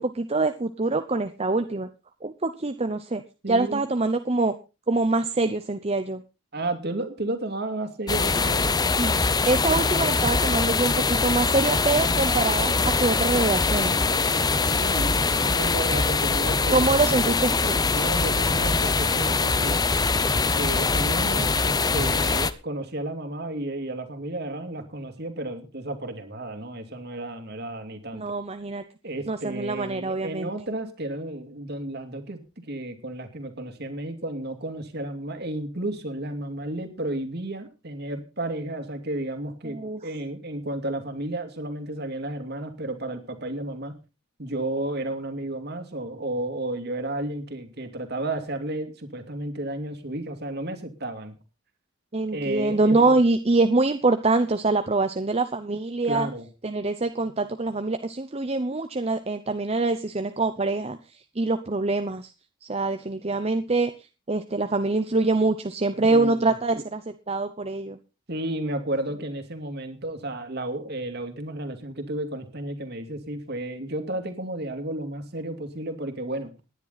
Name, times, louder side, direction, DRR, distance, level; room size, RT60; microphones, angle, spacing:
voice 1, 0.0-1.9 2.2-3.2 3.5-4.5 4.9-6.2 9.0-9.2 9.5-14.0 16.7-17.8 28.1-28.8 29.3-30.5 39.7-40.0 52.1-56.3 56.6-61.0 61.4-62.3 62.6-63.9 64.3-68.0, right 3 dB, 30° right, 8 dB, 0.7 m, -24 dB
voice 2, 3.4-3.8 6.5-8.8 13.9-14.5 14.8-16.9 17.9-19.9 20.5-28.2 29.0-43.9 44.4-51.3 52.3-53.2 56.1-56.5 66.1-66.5 68.3-76.5, right 1 dB, 50° right, 6 dB, 2.6 m, -32 dB
sound 1, 8.1-22.5, left 4 dB, 20° left, 0.6 m, -23 dB
17.0 x 10.5 x 4.1 m, 0.31 s
head